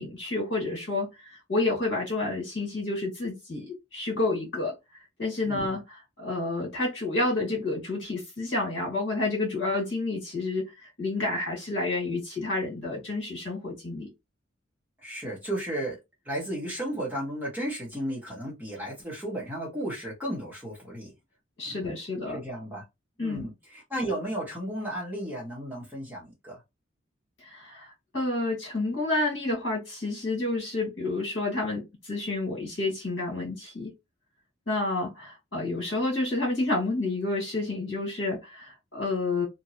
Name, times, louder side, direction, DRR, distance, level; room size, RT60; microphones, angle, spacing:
voice 1, 0.0-4.7 5.2-10.7 11.0-14.1 21.6-22.4 23.2-23.4 27.4-27.9 28.1-33.9 34.7-39.5, left 2 dB, 65° left, 1.8 m, -29 dB
voice 2, 15.0-16.0 16.2-21.1 21.7-21.8 22.3-22.8 23.2-26.6, right 1 dB, 10° right, 1.3 m, -34 dB
2.9 x 2.7 x 2.8 m
head